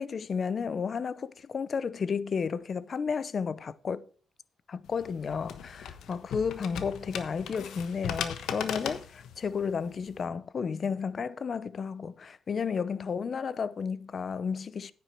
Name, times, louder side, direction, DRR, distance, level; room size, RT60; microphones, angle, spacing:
voice 1, 0.0-4.0 4.7-14.9, left 6 dB, 45° left, 0.7 m, -32 dB
sound 1, 4.9-10.2, left 8 dB, 75° left, 1.2 m, -38 dB
9.8 x 9.4 x 4.5 m
cardioid pair, 90°, 0 cm